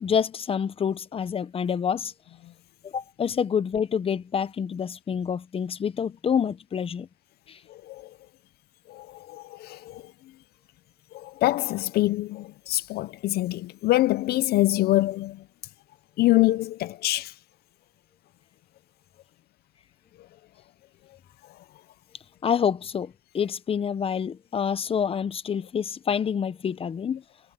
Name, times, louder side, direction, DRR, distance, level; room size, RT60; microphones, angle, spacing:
voice 1, 0.0-2.1 2.8-7.1 7.5-7.6 22.4-27.2, left 7 dB, 35° left, 0.9 m, -27 dB
voice 2, 7.7-8.2 8.9-10.1 11.1-15.4 16.2-17.4 20.2-20.3 21.4-21.6, left 17 dB, 70° left, 0.5 m, -25 dB
cardioid pair, 110°, 17 cm